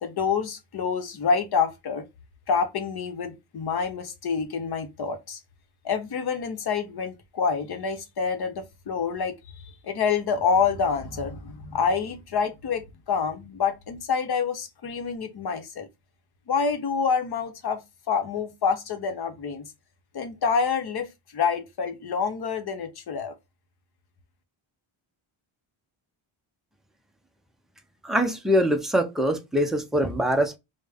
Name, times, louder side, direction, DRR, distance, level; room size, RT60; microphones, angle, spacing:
voice 1, 0.0-2.1 2.5-5.4 5.8-9.4 9.8-15.9 16.5-17.8 18.1-19.7 20.1-23.3, left 6 dB, 50° left, 0.8 m, -27 dB
voice 2, 28.0-30.6, equal, ahead, 0.3 m, -23 dB
5.0 x 2.1 x 3.4 m
cardioid pair, 155°, 49 cm